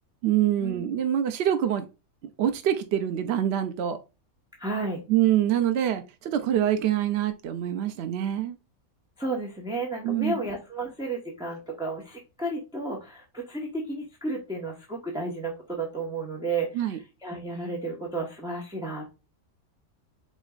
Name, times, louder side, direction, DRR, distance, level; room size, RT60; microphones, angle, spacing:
voice 1, 0.2-1.9 2.4-4.0 5.1-8.6 10.0-10.4 16.8-17.0, right 11 dB, 70° right, 0.6 m, -25 dB
voice 2, 4.6-5.0 9.2-19.1, right 2 dB, 5° right, 0.9 m, -32 dB
5.3 x 4.1 x 2.4 m
omnidirectional pair, 1.6 m